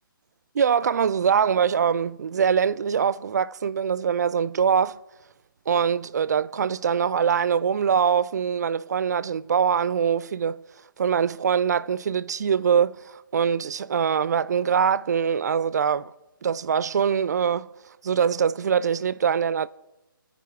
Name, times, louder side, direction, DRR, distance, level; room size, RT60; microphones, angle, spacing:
voice 1, 0.5-5.0 5.7-10.6 11.0-16.1 16.4-17.7 18.0-19.7, right 7 dB, 50° right, 0.6 m, -23 dB
26.0 x 10.5 x 4.8 m
figure-of-eight pair, 140°, 12 cm